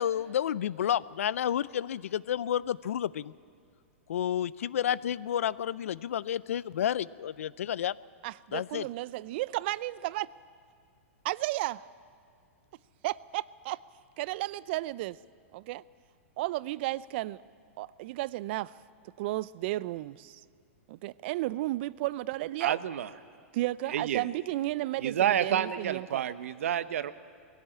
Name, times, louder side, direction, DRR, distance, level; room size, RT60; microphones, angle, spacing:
voice 1, 0.0-3.3 4.1-7.9 8.5-8.9, left 10 dB, 75° left, 20 dB, 0.5 m, -30 dB
voice 2, 8.2-10.3 11.2-11.9 13.0-13.8 14.2-15.2 15.5-15.8 16.4-17.4 17.8-18.7 19.2-20.4 20.9-22.8 23.5-26.2, right 17 dB, 50° right, 20 dB, 0.5 m, -33 dB
voice 3, 22.6-23.1 23.9-24.2 25.0-27.1, right 10 dB, 75° right, 14 dB, 0.9 m, -29 dB
20.5 x 16.5 x 8.7 m, 2.3 s
hypercardioid pair, 125°, 7 cm